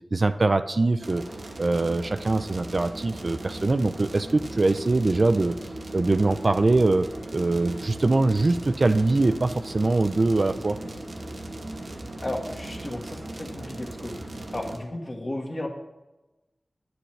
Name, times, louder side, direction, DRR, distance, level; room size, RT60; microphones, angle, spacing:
voice 1, 0.1-1.2 1.6-5.6 5.9-10.8, right 2 dB, 55° right, 10 dB, 0.4 m, -23 dB
sound 1, 1.0-14.8, right 1 dB, 75° right, 1.2 m, -38 dB
voice 2, 12.2-14.1 14.5-15.7, left 1 dB, 45° left, -1 dB, 1.5 m, -34 dB
10.5 x 7.8 x 3.2 m, 1.1 s
wide cardioid pair, 70°, 0 cm